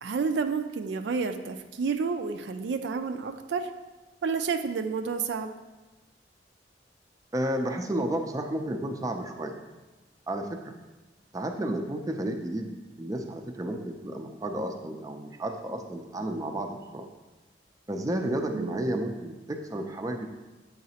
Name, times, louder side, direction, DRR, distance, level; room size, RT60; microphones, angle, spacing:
voice 1, 0.0-3.7 4.2-5.5 18.5-18.8, right 5 dB, 80° right, 7 dB, 0.4 m, -30 dB
voice 2, 7.3-9.5 10.3-10.7 11.3-12.7 13.0-17.1 17.9-20.3, right 1 dB, 20° right, 4 dB, 0.4 m, -32 dB
8.5 x 4.0 x 2.8 m, 1.1 s
head